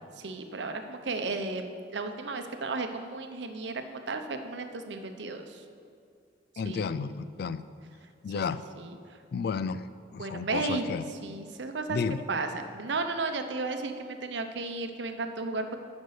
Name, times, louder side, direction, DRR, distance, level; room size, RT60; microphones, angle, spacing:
voice 1, 0.2-5.6 6.6-6.8 8.3-8.4 8.8-9.0 10.2-10.9 11.2-12.0 12.3-15.8, right 3 dB, 70° right, 7 dB, 0.7 m, -34 dB
voice 2, 6.6-7.6 8.2-8.6 9.3-9.8 10.1-11.0 11.9-12.2, left 5 dB, 55° left, 14 dB, 0.3 m, -32 dB
10.5 x 5.3 x 6.6 m, 2.3 s
head